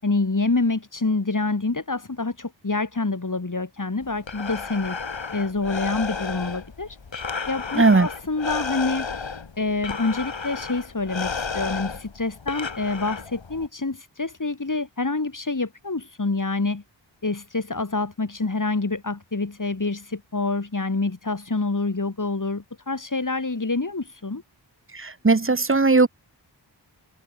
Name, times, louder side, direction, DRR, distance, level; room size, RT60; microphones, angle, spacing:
voice 1, 0.0-5.0 5.3-7.0 7.5-9.1 9.6-16.8 17.2-24.4, left 3 dB, 40° left, 4.9 m, -27 dB
Breathing, 4.0-13.7, left 5 dB, 75° left, 5.3 m, -32 dB
voice 2, 7.8-8.1 24.9-26.1, right 3 dB, 30° right, 1.2 m, -18 dB
cardioid pair, 50°, 45 cm